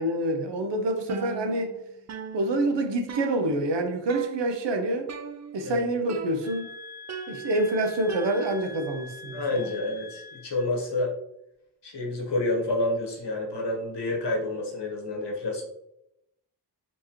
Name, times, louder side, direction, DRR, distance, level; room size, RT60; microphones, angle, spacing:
voice 1, 0.0-1.8 2.3-5.1 5.5-6.7 7.3-9.4, right 1 dB, 85° right, 5 dB, 0.7 m, -27 dB
sound 1, 1.1-1.8 2.1-3.8 4.1-4.7 5.1-5.8 6.1-6.7 7.1-8.8, right 6 dB, 40° right, 0.4 m, -40 dB
sound 2, 6.4-10.7, left 3 dB, 25° left, 0.4 m, -44 dB
voice 2, 9.3-11.1 11.8-15.6, left 2 dB, 75° left, 0 dB, 1.2 m, -29 dB
4.4 x 2.9 x 3.0 m, 0.80 s
cardioid pair, 50°, 42 cm